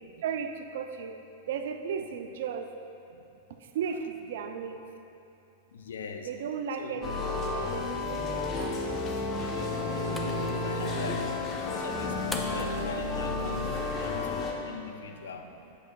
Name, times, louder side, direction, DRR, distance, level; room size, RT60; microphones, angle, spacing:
voice 1, 0.2-1.1 1.5-2.7 3.8-4.8 6.2-7.1 7.5-8.8, right 7 dB, 65° right, 7 dB, 0.4 m, -35 dB
voice 2, 5.7-6.3 6.8-7.1 9.5-11.3 11.6-15.5, left 5 dB, 75° left, 5 dB, 0.5 m, -41 dB
sound 1, 7.0-14.5, left 3 dB, 30° left, 0.9 m, -31 dB
sound 2, 9.5-14.5, left 1 dB, 10° left, 0.5 m, -45 dB
8.1 x 6.3 x 2.3 m, 2.7 s
figure-of-eight pair, 95°, 0 cm